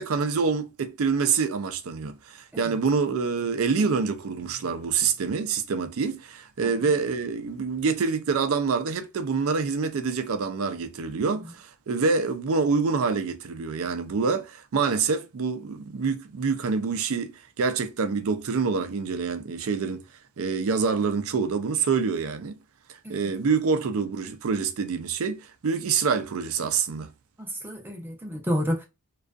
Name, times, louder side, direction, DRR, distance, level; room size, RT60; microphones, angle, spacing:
voice 1, 0.0-20.1 20.4-22.6 22.9-27.1, right 5 dB, 65° right, 0.4 m, -26 dB
voice 2, 27.4-28.8, equal, 10° right, 0.5 m, -29 dB
2.4 x 2.3 x 2.3 m
head